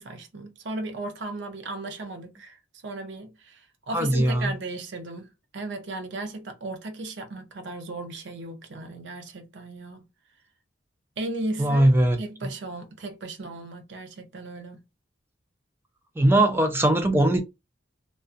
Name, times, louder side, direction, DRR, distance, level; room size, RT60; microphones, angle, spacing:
voice 1, 0.0-2.6 2.8-10.1 11.2-11.9 12.2-14.8, right 2 dB, 60° right, 0.6 m, -36 dB
voice 2, 3.9-4.5 11.6-12.2 16.2-17.4, right 1 dB, 10° right, 0.4 m, -20 dB
2.4 x 2.2 x 2.5 m
head